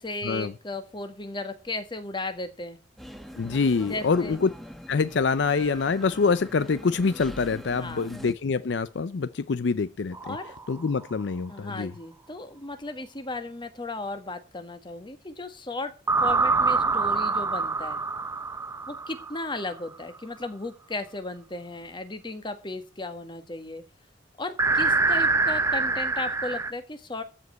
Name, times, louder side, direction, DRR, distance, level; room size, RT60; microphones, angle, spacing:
voice 1, 0.0-2.8 3.8-4.4 7.8-8.2 10.2-10.5 11.5-15.9 16.2-18.0 18.9-23.8 24.4-27.2, left 2 dB, 25° left, 1.6 m, -35 dB
sound 1, 3.0-8.3, equal, ahead, 1.0 m, -43 dB
voice 2, 3.4-4.5 4.9-10.4 10.7-11.9, left 4 dB, 70° left, 0.5 m, -25 dB
Piano, 5.5-7.5, right 1 dB, 75° right, 1.9 m, -50 dB
sound 2, 10.1-11.0 16.1-19.7 24.6-26.7, right 3 dB, 15° right, 0.5 m, -25 dB
14.0 x 5.2 x 8.0 m
head